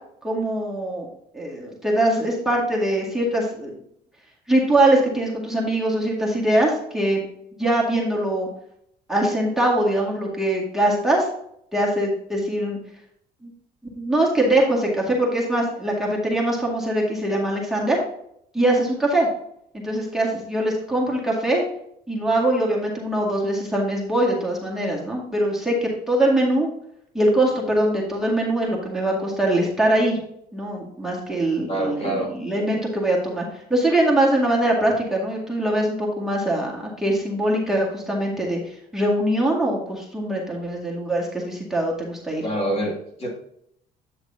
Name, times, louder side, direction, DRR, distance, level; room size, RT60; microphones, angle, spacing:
voice 1, 0.2-1.1 1.3-3.7 4.5-7.3 7.6-8.5 9.1-11.3 11.7-12.8 13.4-13.5 13.9-18.0 18.5-19.3 19.8-21.6 22.1-26.7 27.1-30.2 30.5-42.4, right 1 dB, ahead, -4 dB, 2.0 m, -22 dB
voice 2, 31.7-32.3 42.4-43.4, right 1 dB, 35° left, -1 dB, 2.4 m, -26 dB
9.2 x 6.5 x 2.7 m, 0.73 s
cardioid pair, 110°, 17 cm